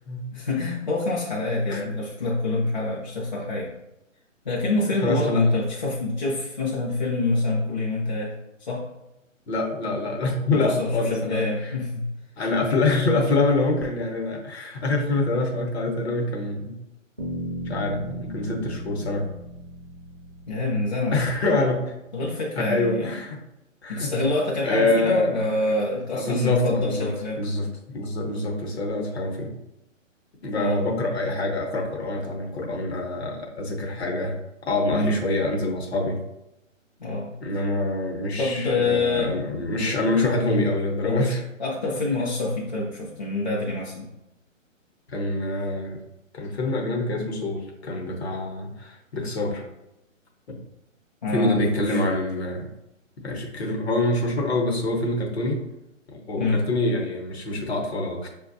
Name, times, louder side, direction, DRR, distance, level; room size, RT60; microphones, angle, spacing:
voice 1, 0.3-3.7 4.4-8.3 8.6-8.9 10.5-12.1 20.5-21.2 22.1-23.1 23.9-27.4 30.6-30.8 34.9-35.2 37.0-37.3 38.4-39.3 39.8-39.9 41.0-41.3 41.6-44.1 51.2-52.0 56.4-56.6, left 2 dB, 35° left, -5 dB, 0.5 m, -26 dB
voice 2, 5.0-5.4 9.5-11.8 12.4-16.8 17.7-19.3 21.1-21.9 22.6-23.4 23.8-24.1 24.6-25.3 26.1-27.1 27.4-29.5 30.4-34.4 34.7-36.2 37.4-41.4 45.1-46.0 46.3-49.6 50.5-50.6 51.3-52.7 53.2-55.6 56.1-58.3, left 2 dB, 50° left, 1 dB, 0.9 m, -25 dB
sound 1, 17.2-21.2, right 1 dB, 25° right, 0.4 m, -36 dB
5.9 x 2.3 x 2.6 m, 0.90 s
hypercardioid pair, 160°, 40 cm